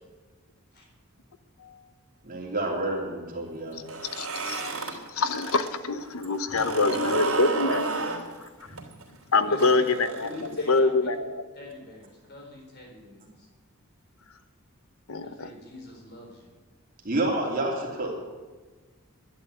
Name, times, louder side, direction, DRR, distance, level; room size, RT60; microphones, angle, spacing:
voice 1, 2.2-3.8 17.0-18.1, right 2 dB, 40° right, -1 dB, 2.9 m, -29 dB
sound 1, 3.8-5.7 6.0-10.8, right 3 dB, 85° right, 3.0 m, -32 dB
voice 2, 4.2-4.7 5.1-8.0 9.3-11.4 15.1-15.5, left 3 dB, 75° left, 11 dB, 0.9 m, -25 dB
voice 3, 6.6-7.2 9.5-10.9 11.5-13.5 15.2-16.5, left 1 dB, 50° left, 0 dB, 4.0 m, -43 dB
11.5 x 11.0 x 8.2 m, 1.3 s
head